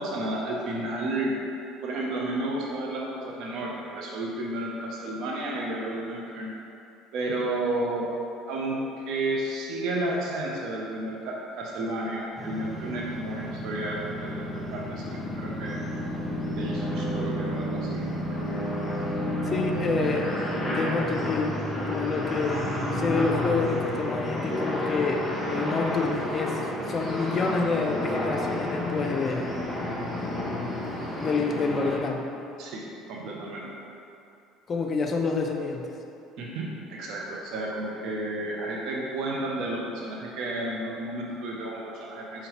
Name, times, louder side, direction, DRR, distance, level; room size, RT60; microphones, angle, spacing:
voice 1, 0.0-1.4 1.8-6.5 7.1-8.1 8.5-15.8 16.5-18.4 32.6-33.7 36.4-42.5, right 1 dB, 65° right, -3 dB, 0.5 m, -32 dB
sound 1, 12.3-32.0, left 1 dB, 10° left, 0.9 m, -31 dB
voice 2, 19.4-20.3 20.7-21.6 21.9-22.6 22.9-25.3 25.5-26.6 26.9-29.5 31.2-32.2 34.7-35.8, left 4 dB, 35° left, 2 dB, 0.5 m, -27 dB
4.3 x 3.8 x 3.0 m, 2.7 s
hypercardioid pair, 75°, 0 cm